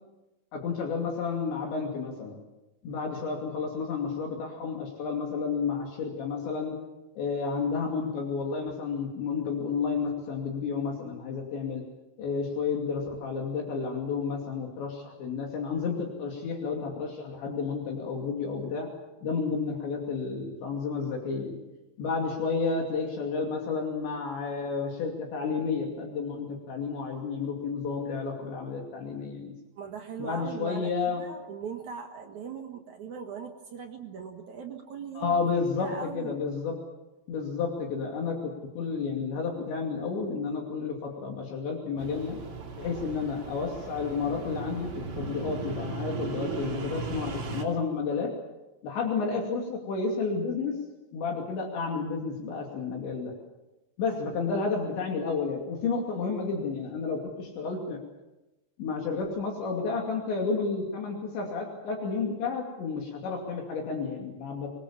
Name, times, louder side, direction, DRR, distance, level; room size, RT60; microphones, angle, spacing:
voice 1, 0.5-2.4 2.8-6.8 7.2-11.8 12.2-18.9 19.2-21.6 22.0-29.5 30.2-31.2 35.2-36.7 37.3-42.4 42.8-48.3 48.8-50.8 51.1-53.3 54.0-58.0 58.8-64.7, left 5 dB, 70° left, 1 dB, 4.8 m, -31 dB
voice 2, 29.8-35.4 35.8-36.3 54.1-54.4, right 6 dB, 60° right, 3 dB, 2.1 m, -40 dB
sound 1, 42.0-47.6, right 4 dB, 40° right, 3.8 m, -37 dB
25.0 x 22.0 x 7.3 m, 1.0 s
omnidirectional pair, 5.5 m